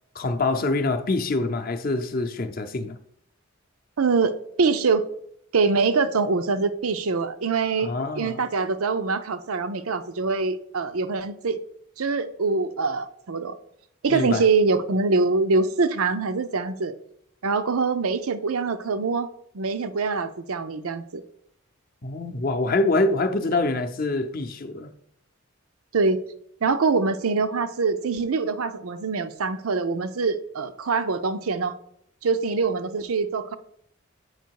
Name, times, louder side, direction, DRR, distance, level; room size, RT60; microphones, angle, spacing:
voice 1, 0.1-3.0 7.8-8.4 14.1-14.4 22.0-24.9, left 2 dB, 40° left, 0.6 m, -25 dB
voice 2, 4.0-5.0 5.5-11.6 12.0-13.6 14.0-16.9 17.4-19.3 19.5-21.2 25.9-26.2 26.6-31.7 32.2-33.6, right 4 dB, 85° right, 0.6 m, -24 dB
8.1 x 5.1 x 4.6 m
head